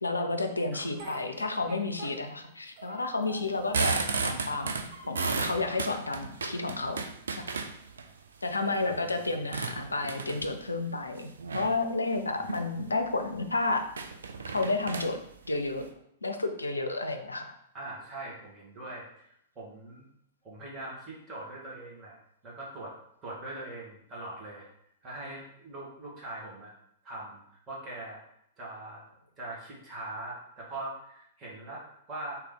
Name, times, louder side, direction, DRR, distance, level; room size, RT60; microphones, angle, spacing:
voice 1, 0.0-7.4 8.4-13.8 14.5-15.2 15.4-15.9 16.2-17.5, left 3 dB, 80° left, 6 dB, 0.4 m, -31 dB
Speech, 0.7-2.5 2.8-4.2 4.5-5.5 6.1-6.8, right 3 dB, 45° right, 0.8 m, -47 dB
sound 1, 3.4-8.0 8.6-10.6 11.4-11.8 12.3-12.7 13.0-13.1 13.4-13.5 13.9-15.9, right 4 dB, 70° right, 0.4 m, -33 dB
voice 2, 17.7-20.0 20.4-22.2 22.4-22.9 23.2-24.7 25.0-26.7 27.0-28.2 28.6-29.0 29.4-32.4, right 2 dB, 25° right, -5 dB, 1.4 m, -41 dB
3.2 x 2.8 x 3.8 m, 0.72 s
figure-of-eight pair, 105°, 0 cm